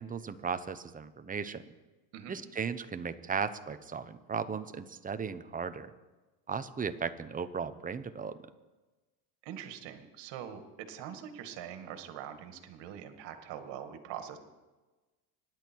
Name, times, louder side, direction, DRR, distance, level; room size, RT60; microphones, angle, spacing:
voice 1, 0.0-1.6 2.3-5.9 6.5-8.4, right 6 dB, 15° right, 11 dB, 0.9 m, -36 dB
voice 2, 9.4-14.4, right 9 dB, 60° right, 7 dB, 2.3 m, -43 dB
25.0 x 10.5 x 4.7 m, 1.2 s
supercardioid pair, 115°, 48 cm